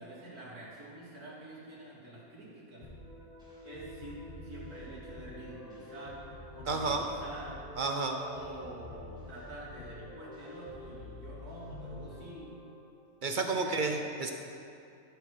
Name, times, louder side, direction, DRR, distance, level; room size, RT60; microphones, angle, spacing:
voice 1, 0.0-2.8 3.6-6.2 6.5-7.6 8.2-12.6 13.2-13.9, right 1 dB, 75° right, -7 dB, 3.0 m, -47 dB
sound 1, 2.8-12.9, left 1 dB, 5° right, 2.2 m, -47 dB
voice 2, 6.7-7.1 7.8-8.2 13.2-14.3, right 3 dB, 60° right, 4 dB, 0.5 m, -31 dB
13.0 x 6.3 x 4.9 m, 2.6 s
omnidirectional pair, 1.6 m